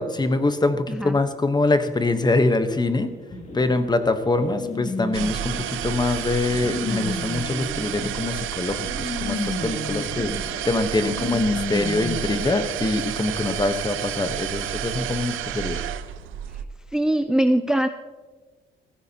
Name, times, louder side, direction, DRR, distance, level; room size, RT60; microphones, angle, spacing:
voice 1, 0.0-3.1 3.5-15.8, left 2 dB, 20° left, 9 dB, 1.0 m, -24 dB
sound 1, 3.3-12.4, left 2 dB, 40° left, 2.5 m, -32 dB
sound 2, 5.1-16.6, right 11 dB, 85° right, 0.7 m, -30 dB
voice 2, 16.9-17.9, right 1 dB, 5° right, 8 dB, 0.5 m, -21 dB
15.5 x 14.5 x 2.9 m, 1.4 s
cardioid pair, 90°, 20 cm